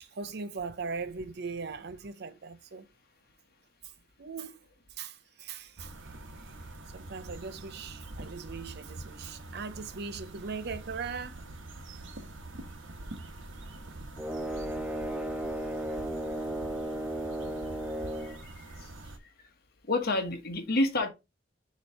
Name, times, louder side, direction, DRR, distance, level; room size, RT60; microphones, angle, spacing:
voice 1, 0.0-2.9 3.8-3.9 4.2-4.6 5.0-5.9 6.4-6.6 6.9-11.4, right 5 dB, 55° right, 0.6 m, -39 dB
sound 1, 5.8-19.2, right 2 dB, 75° right, 1.1 m, -45 dB
sound 2, 14.2-18.4, right 1 dB, 5° right, 0.4 m, -34 dB
voice 2, 18.2-18.9 19.4-19.5 19.9-21.1, left 2 dB, 55° left, 1.3 m, -30 dB
6.9 x 3.1 x 4.4 m
head